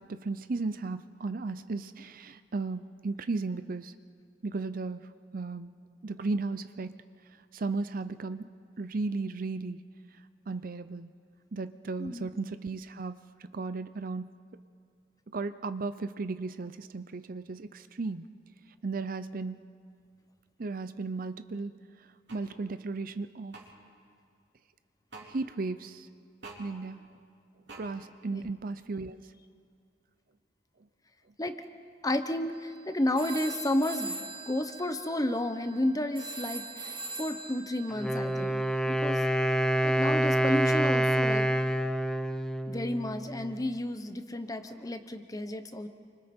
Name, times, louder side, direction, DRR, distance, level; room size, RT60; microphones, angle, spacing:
voice 1, 0.0-3.9 4.4-5.7 6.0-7.0 7.5-8.5 8.8-9.8 10.5-11.1 11.5-14.4 15.3-18.3 18.8-19.7 20.6-23.6 25.3-26.1 26.6-27.0 27.8-29.2, right 3 dB, 50° right, 12 dB, 0.6 m, -35 dB
sound 1, 22.3-22.5 23.5-23.7 25.1-25.3 26.4-26.6 27.7-27.8, right 3 dB, 70° right, 3.8 m, -46 dB
voice 2, 32.0-34.1 34.5-38.6 38.9-39.2 39.8-41.5 42.7-45.9, left 1 dB, 20° left, 9 dB, 1.0 m, -31 dB
sound 2, 32.5-32.8 33.1-39.8, right 3 dB, 25° right, 1.5 m, -42 dB
Wind instrument woodwind instrument, 37.9-43.7, right 1 dB, 5° left, 0.5 m, -27 dB
29.0 x 25.0 x 4.5 m, 2.2 s
head